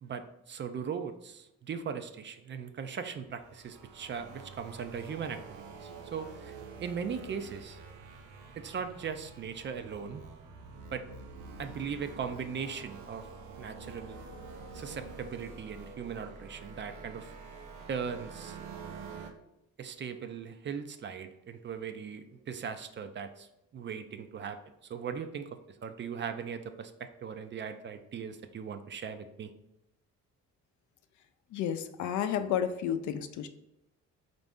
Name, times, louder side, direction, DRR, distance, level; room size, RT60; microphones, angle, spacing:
voice 1, 0.0-7.8 8.6-10.2 10.9-11.1 11.6-13.3 13.6-14.2 14.7-17.3 17.9-18.6 19.8-23.5 23.7-25.5 25.8-29.5, right 6 dB, 40° right, 9 dB, 0.4 m, -39 dB
sound 1, 3.1-19.3, right 4 dB, 80° right, 0.6 m, -47 dB
voice 2, 31.5-33.5, left 9 dB, 75° left, 9 dB, 0.5 m, -31 dB
4.2 x 2.6 x 3.5 m, 0.88 s
cardioid pair, 90°, 30 cm